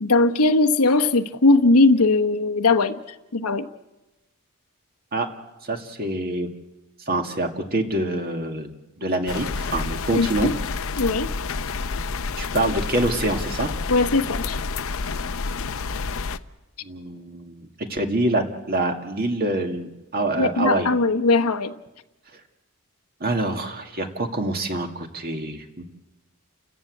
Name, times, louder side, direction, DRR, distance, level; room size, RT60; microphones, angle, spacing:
voice 1, 0.0-3.0 3.3-3.7 10.1-10.5 11.0-11.3 13.9-14.6 20.4-21.7, left 3 dB, 85° left, 6 dB, 1.1 m, -19 dB
voice 2, 5.6-6.5 7.1-8.7 9.0-10.5 12.4-13.7 16.8-20.9 23.2-25.8, right 1 dB, 45° right, 4 dB, 2.2 m, -26 dB
sound 1, 9.3-16.4, left 4 dB, 65° left, 0.7 m, -29 dB
30.0 x 14.5 x 8.6 m, 1.0 s
head